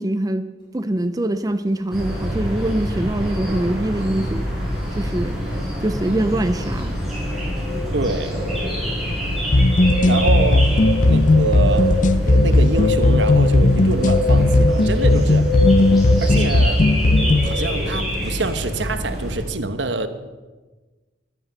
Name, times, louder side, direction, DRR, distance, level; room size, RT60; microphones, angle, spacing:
voice 1, 0.0-4.5 5.0-5.4 5.8-7.0, right 1 dB, 20° right, 10 dB, 0.6 m, -23 dB
sound 1, 0.6-19.4, equal, 25° left, 5.7 m, -38 dB
sound 2, 1.9-19.4, left 1 dB, ahead, 6.0 m, -25 dB
voice 2, 7.9-8.4 10.1-10.7 11.1-15.5 16.2-16.8 17.4-20.1, right 3 dB, 80° right, 9 dB, 1.2 m, -26 dB
sound 3, 9.5-17.5, left 2 dB, 45° left, 0.6 m, -16 dB
15.0 x 12.0 x 6.7 m, 1.3 s
head